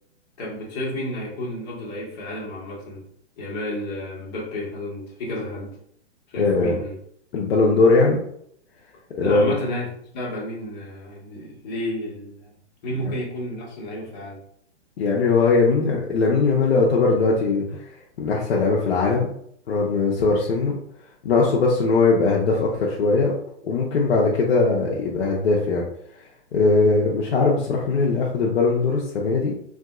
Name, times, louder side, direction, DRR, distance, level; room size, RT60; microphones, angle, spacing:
voice 1, 0.4-3.0 3.4-5.8 6.3-7.0 9.2-12.5 12.8-14.4, left 1 dB, 35° left, -4 dB, 1.2 m, -31 dB
voice 2, 6.4-6.8 7.3-8.2 9.2-9.5 15.0-17.8 18.2-19.3 19.7-20.7 21.2-23.3 23.6-25.8 26.5-29.7, left 3 dB, 65° left, -4 dB, 0.7 m, -20 dB
3.6 x 2.7 x 2.4 m, 0.69 s
hypercardioid pair, 150°, 35 cm